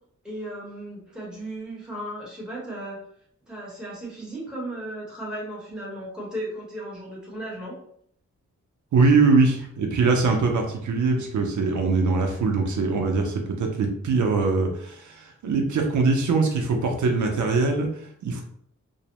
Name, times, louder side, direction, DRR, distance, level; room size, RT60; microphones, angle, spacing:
voice 1, 0.2-3.0 3.5-7.8, right 1 dB, 5° right, -6 dB, 0.9 m, -35 dB
voice 2, 8.9-18.4, right 4 dB, 75° right, 2 dB, 0.5 m, -22 dB
2.5 x 2.0 x 2.9 m, 0.66 s
wide cardioid pair, 160°, 30 cm